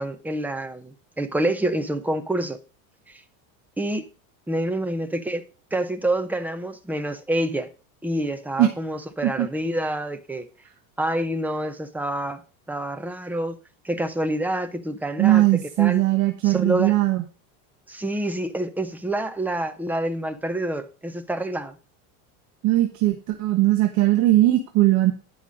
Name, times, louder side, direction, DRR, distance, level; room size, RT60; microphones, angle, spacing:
voice 1, 0.0-2.6 3.1-3.2 3.8-4.1 4.5-5.4 5.7-7.7 8.0-10.5 11.0-12.4 12.7-13.6 13.8-15.4 15.8-16.0 16.4-16.9 17.9-21.8, right 1 dB, 5° right, 0.6 m, -27 dB
voice 2, 15.2-17.2 22.6-25.1, right 15 dB, 45° right, 1.1 m, -19 dB
10.0 x 5.5 x 6.3 m
supercardioid pair, 145°, 41 cm